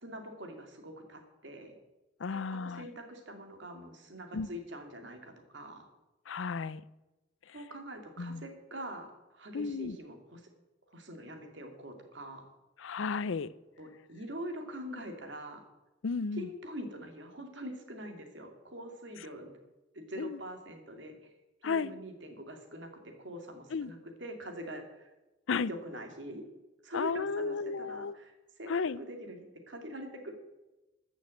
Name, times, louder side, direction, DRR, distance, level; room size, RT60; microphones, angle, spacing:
voice 1, 0.0-1.7 2.3-5.9 7.5-10.4 10.9-12.4 13.8-15.6 16.3-19.5 19.9-21.3 21.6-25.1 25.6-26.4 26.8-30.3, equal, 65° right, 4 dB, 2.4 m, -44 dB
voice 2, 2.2-2.9 4.3-4.5 6.3-6.8 8.2-8.5 9.5-10.0 12.8-13.5 16.0-16.5 20.2-20.4 21.6-21.9 23.7-23.9 25.5-25.7 26.9-28.1 28.7-29.0, left 5 dB, 85° left, 18 dB, 0.5 m, -33 dB
14.0 x 6.4 x 7.7 m, 1.0 s
head